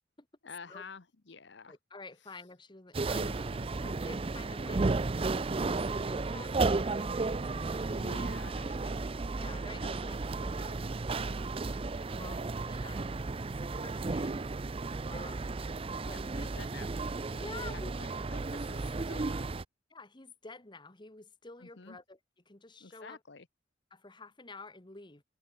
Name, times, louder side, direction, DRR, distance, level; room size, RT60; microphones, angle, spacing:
voice 1, 0.4-1.8 3.1-3.7 7.9-9.0 16.1-16.9 17.3-17.4 17.7-19.4 21.6-22.0 22.8-23.5, left 4 dB, 60° left, 1.0 m, -50 dB
voice 2, 1.7-3.3 3.8-4.9 5.5-7.9 9.3-14.5 15.1-15.6 16.0-16.5 17.3-17.9 19.9-22.2 22.4-23.2 23.9-25.2, left 3 dB, 25° left, 1.5 m, -50 dB
sound 1, 2.9-19.6, right 3 dB, 30° right, 0.5 m, -33 dB
head